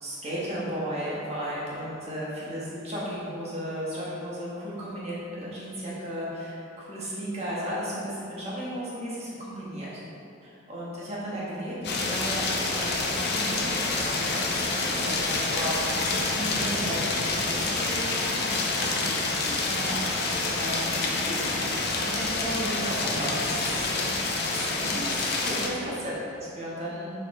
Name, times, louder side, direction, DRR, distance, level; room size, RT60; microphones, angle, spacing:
voice 1, 0.0-10.0 10.4-12.4 12.7-23.8 24.5-26.1 26.4-27.1, equal, 30° right, -7 dB, 1.3 m, -35 dB
sound 1, 11.8-25.7, left 3 dB, 50° left, 0.7 m, -27 dB
6.9 x 5.2 x 3.6 m, 2.6 s
head